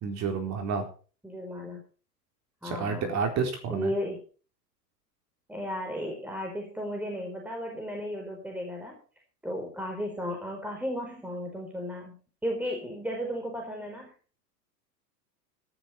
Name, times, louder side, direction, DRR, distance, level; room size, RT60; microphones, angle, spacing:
voice 1, 0.0-0.9 2.6-3.9, right 5 dB, 35° right, 6 dB, 4.1 m, -30 dB
voice 2, 1.2-1.8 2.6-3.1 3.7-4.2 5.5-9.0 9.4-12.2 12.4-14.1, equal, 5° right, 1 dB, 4.5 m, -34 dB
18.0 x 11.0 x 4.5 m, 0.39 s
hypercardioid pair, 100°, 48 cm